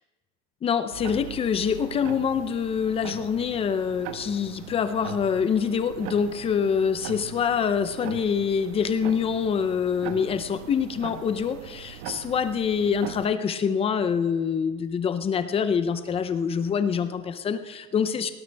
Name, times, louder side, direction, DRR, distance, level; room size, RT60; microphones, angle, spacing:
voice 1, 0.6-18.3, left 7 dB, 15° left, 10 dB, 0.6 m, -25 dB
sound 1, 0.9-13.3, right 9 dB, 90° right, 1.5 m, -41 dB
19.0 x 12.0 x 3.4 m, 1.3 s
cardioid pair, 175°, 35 cm